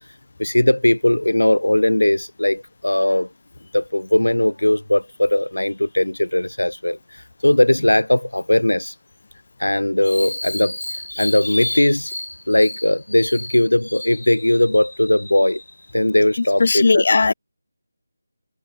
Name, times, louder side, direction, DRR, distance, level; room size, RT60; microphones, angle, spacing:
voice 1, 0.4-3.3 3.7-9.0 9.6-17.3, left 1 dB, 85° left, 0.5 m, -19 dB
voice 2, 16.6-17.3, left 3 dB, 50° left, 1.4 m, -16 dB
figure-of-eight pair, 160°, 0 cm